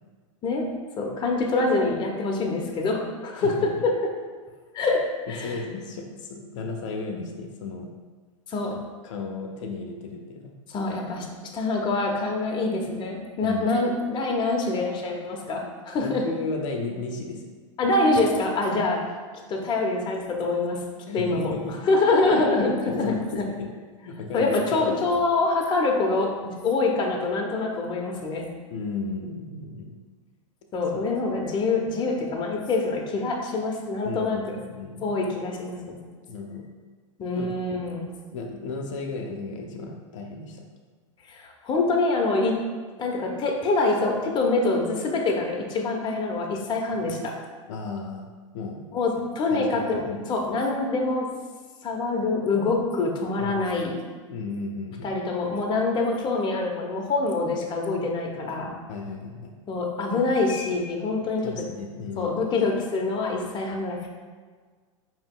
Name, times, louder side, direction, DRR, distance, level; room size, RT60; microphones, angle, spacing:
voice 1, 1.0-3.5 4.7-5.0 5.3-5.6 8.5-8.8 10.7-11.3 11.5-16.2 17.8-19.0 19.5-20.8 21.1-21.5 21.8-23.5 24.3-28.5 30.7-34.6 35.0-36.0 37.2-38.1 41.3-42.6 43.0-47.3 48.9-51.3 51.8-54.0 55.0-58.7 59.7-61.6 62.2-64.1, left 3 dB, 30° left, 0 dB, 0.8 m, -25 dB
voice 2, 5.3-7.9 9.0-10.5 13.4-13.7 16.0-17.5 18.7-18.9 21.1-21.8 22.4-23.7 24.0-25.0 28.7-29.9 34.0-35.1 36.3-36.6 37.4-37.5 38.3-40.6 47.7-48.8 49.5-50.2 53.4-53.6 54.3-55.1 58.9-59.6 61.4-62.3, left 3 dB, 75° left, 1 dB, 0.6 m, -34 dB
4.9 x 2.9 x 3.7 m, 1.5 s
hypercardioid pair, 120°, 16 cm